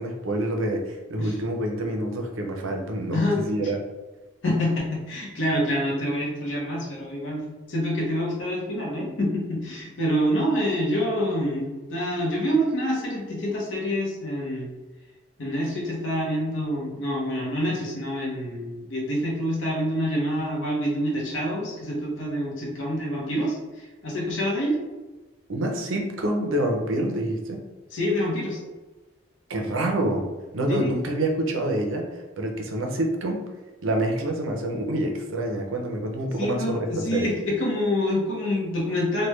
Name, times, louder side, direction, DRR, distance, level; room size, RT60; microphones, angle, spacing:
voice 1, 0.0-3.8 25.5-27.6 29.5-30.2 30.5-33.4 33.8-37.3, right 1 dB, 90° right, 2 dB, 0.6 m, -27 dB
voice 2, 3.1-3.4 4.4-14.7 15.4-24.8 27.9-28.6 30.7-30.9 36.4-39.3, equal, 80° left, -4 dB, 0.9 m, -26 dB
3.2 x 2.2 x 3.1 m, 1.2 s
head